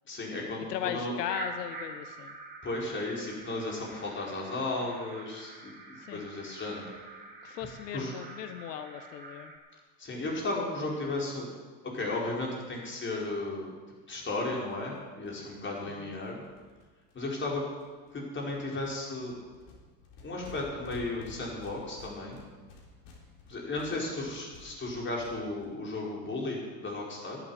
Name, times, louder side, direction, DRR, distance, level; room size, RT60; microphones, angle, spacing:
voice 1, 0.1-1.1 2.6-5.5 5.9-6.9 7.9-8.1 10.0-11.5 11.9-13.7 14.1-16.4 17.1-17.6 18.1-19.3 20.2-22.4 23.5-27.4, left 2 dB, 25° left, -2 dB, 4.8 m, -34 dB
voice 2, 0.7-2.3 6.0-6.2 7.4-9.5 16.0-16.2, left 9 dB, 85° left, 9 dB, 1.0 m, -37 dB
sound 1, 1.3-9.6, right 3 dB, 20° right, 2.8 m, -46 dB
sound 2, 13.3-13.4 13.7-13.8 14.0-14.1 14.2-17.4 17.8-18.1 18.4-25.7, left 3 dB, 55° left, 3.9 m, -53 dB
11.0 x 8.8 x 9.5 m, 1.4 s
hypercardioid pair, 100°, 47 cm